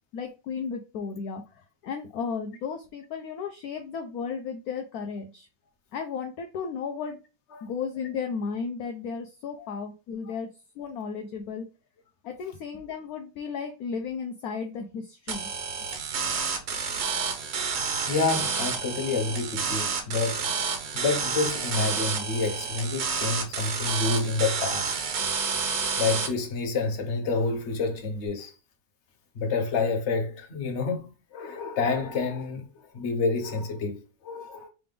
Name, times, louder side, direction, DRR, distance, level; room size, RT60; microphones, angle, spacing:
voice 1, 0.1-1.4 1.8-5.5 5.9-7.2 7.6-10.5 10.8-11.7 12.2-15.5, left 6 dB, 65° left, 1.0 m, -34 dB
sound 1, 15.3-26.3, right 5 dB, 75° right, 1.6 m, -29 dB
voice 2, 18.1-20.5 20.9-25.0 26.0-28.5 29.3-34.7, left 4 dB, 45° left, 1.1 m, -28 dB
3.8 x 3.4 x 3.5 m
omnidirectional pair, 2.0 m